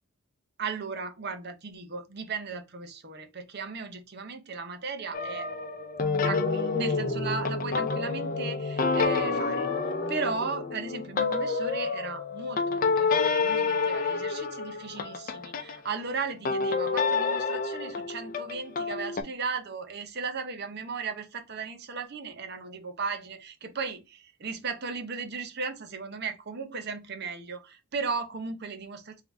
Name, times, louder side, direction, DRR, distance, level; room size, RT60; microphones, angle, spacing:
voice 1, 0.6-5.5 6.2-9.7 10.1-29.2, right 4 dB, 50° right, 0.8 m, -36 dB
sound 1, 5.1-15.8 16.4-19.2, left 4 dB, 40° left, 0.5 m, -28 dB
3.7 x 2.8 x 3.4 m
head